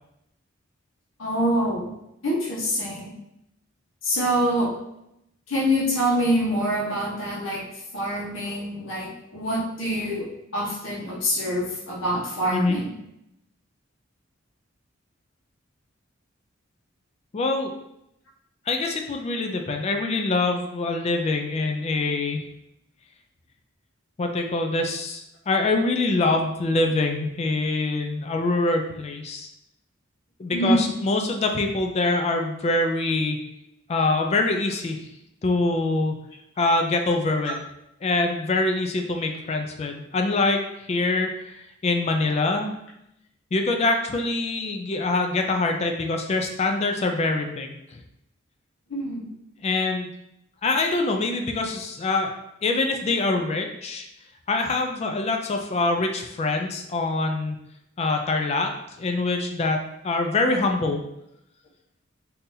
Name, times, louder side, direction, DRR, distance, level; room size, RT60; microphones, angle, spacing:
voice 1, 1.2-1.9 2.2-3.1 4.0-4.8 5.5-7.7 7.9-12.9 30.5-30.9 48.9-49.3, equal, 70° left, -5 dB, 1.0 m, -25 dB
voice 2, 17.3-17.7 18.7-22.4 24.2-29.5 30.4-33.4 33.9-35.0 35.4-36.2 36.6-37.6 38.0-40.6 40.9-42.8 43.5-48.0 49.6-50.1 50.6-52.3 52.6-54.1 54.5-57.6 58.0-58.7 59.0-61.0, left 2 dB, 30° left, 4 dB, 0.3 m, -24 dB
3.8 x 2.7 x 2.6 m, 0.81 s
head